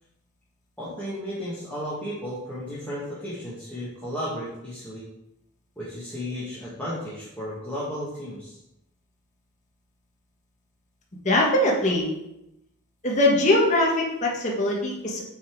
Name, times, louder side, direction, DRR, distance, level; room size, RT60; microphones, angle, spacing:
voice 1, 0.8-5.0 5.8-8.6, equal, 10° left, -9 dB, 1.8 m, -34 dB
voice 2, 11.2-12.1 13.0-15.2, left 1 dB, 35° left, -2 dB, 1.4 m, -21 dB
8.4 x 4.3 x 4.6 m, 0.87 s
head